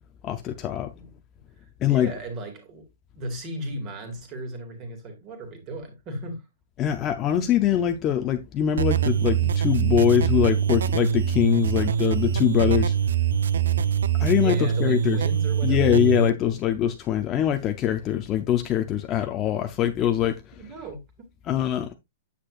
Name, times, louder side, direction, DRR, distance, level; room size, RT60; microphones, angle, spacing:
voice 1, 0.2-0.9 1.8-2.1 6.8-12.9 14.2-15.2 15.6-20.6 21.5-21.9, left 10 dB, 15° left, 0.6 m, -23 dB
voice 2, 1.8-2.8 3.1-6.4 14.4-16.2 20.5-21.0, right 1 dB, 20° right, 2.3 m, -36 dB
sound 1, 8.8-16.3, right 8 dB, 85° right, 0.7 m, -23 dB
8.8 x 8.3 x 2.5 m
hypercardioid pair, 180°, 0 cm